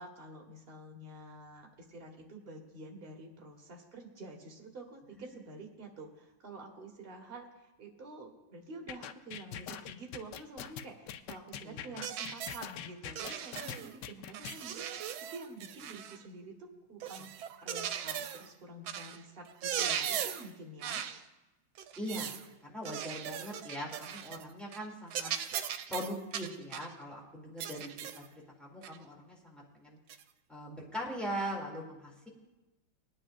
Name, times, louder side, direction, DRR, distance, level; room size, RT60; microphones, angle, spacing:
voice 1, 0.0-21.1, right 2 dB, 30° right, 1 dB, 1.6 m, -48 dB
quick jabs and punch, 8.9-14.6, left 9 dB, 75° left, 1.1 m, -43 dB
sound 1, 12.0-12.7 13.1-13.9 14.3-16.2 17.0-18.5 18.9-19.2 19.5-20.5 20.8-21.2 21.8-22.4 22.8-24.4 24.7-24.9 25.1-26.9 27.6-28.3 28.8-29.0 30.1-30.2, right 9 dB, 85° right, 1.5 m, -38 dB
voice 2, 22.0-25.3 25.9-27.9 28.2-28.3 28.6-30.0 30.5-32.3, equal, ahead, -4 dB, 2.3 m, -41 dB
21.5 x 9.8 x 2.5 m, 1.1 s
omnidirectional pair, 2.2 m